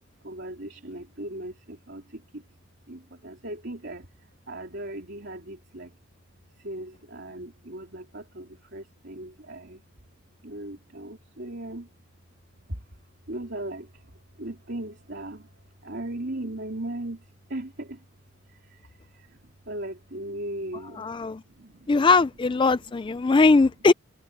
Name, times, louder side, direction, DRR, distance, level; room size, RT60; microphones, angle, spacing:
voice 1, 0.2-2.5 2.9-6.0 6.6-9.8 10.4-11.9 12.7-13.0 13.2-18.1 18.4-21.9 22.7-23.5, right 1 dB, 55° right, 3.5 m, -38 dB
voice 2, 21.0-21.4 21.9-23.9, left 3 dB, 25° left, 0.3 m, -20 dB
head